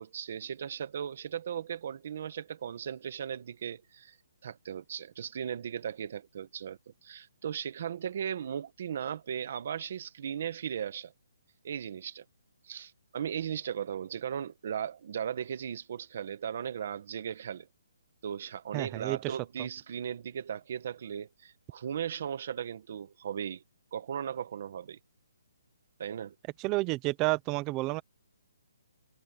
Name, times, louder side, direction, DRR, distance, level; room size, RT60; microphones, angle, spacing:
voice 1, 0.0-4.2 4.4-11.1 11.6-12.2 12.6-17.7 18.2-23.6 23.9-25.0 26.0-26.3, right 8 dB, 30° right, 1.5 m, -37 dB
voice 2, 18.7-19.2 26.6-28.0, right 21 dB, 10° right, 0.6 m, -30 dB
hypercardioid pair, 180°, 0 cm